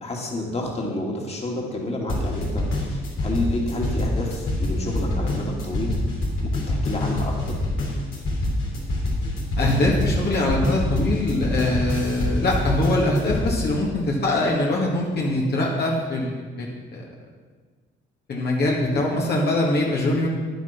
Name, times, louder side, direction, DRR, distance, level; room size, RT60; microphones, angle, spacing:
voice 1, 0.0-5.9 6.4-7.6 18.9-19.1, left 1 dB, 30° left, -1 dB, 2.5 m, -29 dB
sound 1, 2.1-13.5, left 1 dB, 80° left, 3.2 m, -25 dB
voice 2, 9.6-17.0 18.3-20.3, left 1 dB, 55° left, -3 dB, 2.1 m, -23 dB
9.7 x 9.1 x 5.9 m, 1.5 s
cardioid pair, 90°, 20 cm